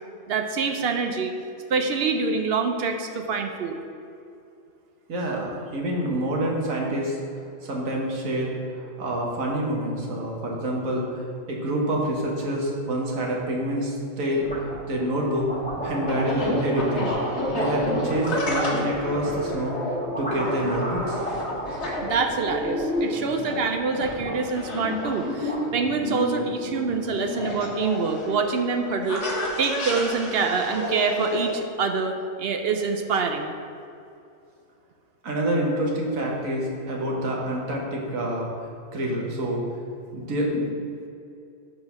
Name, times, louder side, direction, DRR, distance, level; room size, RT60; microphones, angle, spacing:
voice 1, 0.3-1.3 1.7-3.8 22.0-29.2 29.6-33.5, right 4 dB, 60° right, 5 dB, 0.7 m, -26 dB
voice 2, 5.1-7.1 7.6-14.4 14.9-15.5 15.8-21.2 35.2-38.5 38.9-39.6 40.1-40.7, right 1 dB, 85° right, -2 dB, 1.6 m, -27 dB
sound 1, 14.3-14.9 15.3-19.5 20.0-23.3 23.5-24.4 24.7-24.8 25.0-25.8, equal, 5° left, 1.3 m, -34 dB
sound 2, 14.9-31.5, left 1 dB, 60° left, 1.5 m, -30 dB
7.5 x 4.0 x 5.8 m, 2.6 s
omnidirectional pair, 1.4 m